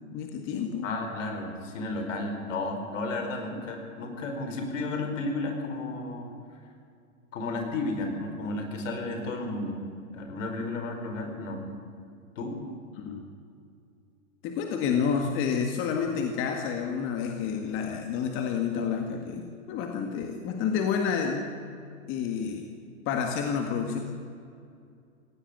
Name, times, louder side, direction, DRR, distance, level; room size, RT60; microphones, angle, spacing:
voice 1, 0.0-1.0 13.0-13.2 14.4-21.5 22.1-22.7 23.1-24.0, left 6 dB, 30° left, 3 dB, 1.9 m, -29 dB
voice 2, 0.8-6.3 7.3-9.7 10.1-11.6 12.4-12.6, left 2 dB, 60° left, 5 dB, 5.1 m, -33 dB
19.0 x 16.5 x 9.4 m, 2.4 s
hypercardioid pair, 135°, 42 cm